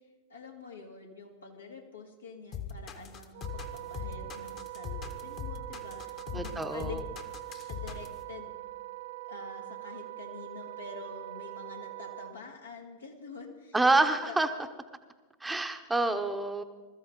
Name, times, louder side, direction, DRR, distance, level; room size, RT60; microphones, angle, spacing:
voice 1, 0.3-7.0 7.6-8.5 9.2-13.8 14.0-14.3, left 4 dB, 75° left, 1 dB, 2.4 m, -47 dB
sound 1, 2.5-8.2, left 8 dB, 35° left, 1.5 m, -40 dB
Wind instrument woodwind instrument, 3.3-12.3, right 17 dB, 50° right, 0.4 m, -43 dB
voice 2, 6.3-7.0 13.7-14.5 15.4-16.6, right 2 dB, 10° right, 7 dB, 1.0 m, -27 dB
21.0 x 14.0 x 4.0 m, 1.3 s
figure-of-eight pair, 90°, 0 cm